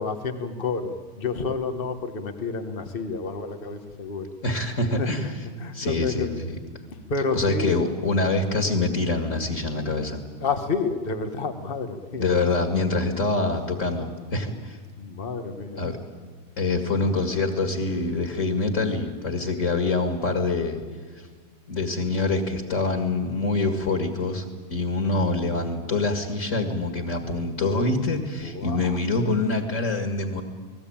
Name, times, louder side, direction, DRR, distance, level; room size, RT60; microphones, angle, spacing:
voice 1, 0.0-4.3 5.0-5.3 5.6-6.3 6.9-7.7 10.4-12.2 15.0-15.8 28.4-29.0, left 4 dB, 70° left, 7 dB, 0.5 m, -30 dB
voice 2, 4.4-5.4 5.7-6.5 7.3-10.2 12.1-14.8 15.8-16.0 16.6-20.8 21.1-21.2 21.7-30.4, left 3 dB, 30° left, 5 dB, 1.9 m, -25 dB
29.5 x 20.0 x 8.9 m, 1.5 s
omnidirectional pair, 3.5 m